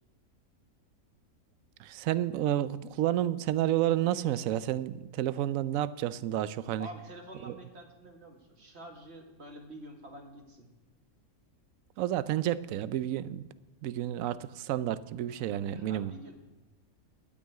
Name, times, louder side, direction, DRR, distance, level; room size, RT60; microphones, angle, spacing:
voice 1, 1.8-6.9 7.4-7.6 12.0-13.5 13.8-16.1, right 12 dB, 70° right, 15 dB, 1.0 m, -30 dB
voice 2, 6.8-10.7 15.7-16.4, right 1 dB, 45° right, 2 dB, 2.1 m, -48 dB
12.5 x 6.2 x 9.4 m, 1.2 s
omnidirectional pair, 1.5 m